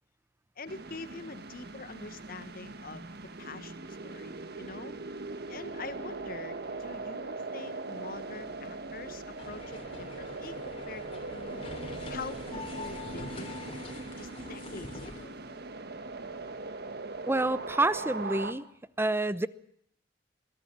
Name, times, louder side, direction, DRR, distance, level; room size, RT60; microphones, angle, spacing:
voice 1, 0.6-3.1 3.4-4.9 5.5-11.7 12.1-13.5 14.2-15.4, left 3 dB, 55° left, 12 dB, 1.5 m, -45 dB
sound 1, 0.7-18.5, right 3 dB, 60° right, 1.6 m, -40 dB
sound 2, 9.4-15.3, left 2 dB, 30° left, 3.4 m, -44 dB
voice 2, 17.3-18.6 19.0-19.5, right 2 dB, 15° right, 16 dB, 0.8 m, -28 dB
23.0 x 17.5 x 7.5 m, 0.71 s
head